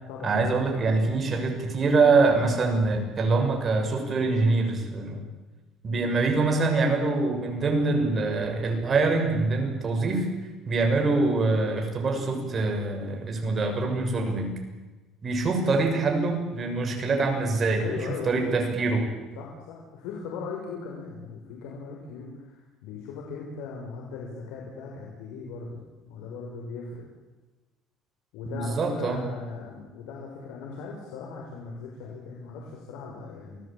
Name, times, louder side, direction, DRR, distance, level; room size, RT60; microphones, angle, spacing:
voice 1, 0.2-5.2 5.8-10.3 10.7-14.6 15.2-19.1 28.4-29.2, right 3 dB, 30° right, 4 dB, 6.5 m, -24 dB
voice 2, 17.8-18.5 19.3-27.1 28.3-33.6, left 4 dB, 90° left, -1 dB, 6.3 m, -38 dB
29.0 x 19.5 x 9.0 m, 1.2 s
cardioid pair, 140°, 0 cm